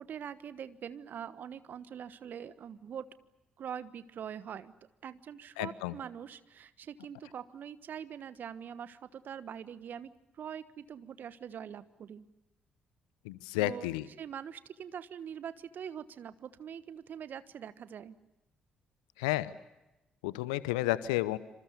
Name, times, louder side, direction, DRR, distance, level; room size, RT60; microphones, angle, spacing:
voice 1, 0.0-3.1 3.6-4.7 5.0-12.3 13.6-13.9 14.2-18.1, right 8 dB, 50° right, 15 dB, 1.3 m, -43 dB
voice 2, 5.6-6.0 13.2-14.0 19.2-19.5 20.2-21.4, left 17 dB, 75° left, 18 dB, 0.8 m, -31 dB
27.0 x 27.0 x 6.9 m, 0.98 s
figure-of-eight pair, 40°, 4 cm